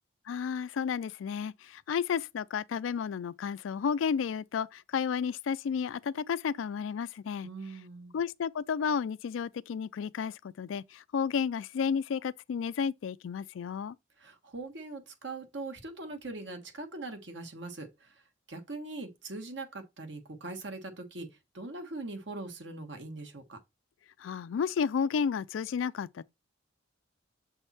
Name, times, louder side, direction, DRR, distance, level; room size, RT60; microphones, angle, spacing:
voice 1, 0.3-7.5 8.1-14.0 24.2-26.2, left 6 dB, 80° left, 0.3 m, -32 dB
voice 2, 7.4-8.1 14.2-18.2 18.5-23.6, right 2 dB, 60° right, 1.3 m, -41 dB
7.1 x 3.5 x 4.1 m
head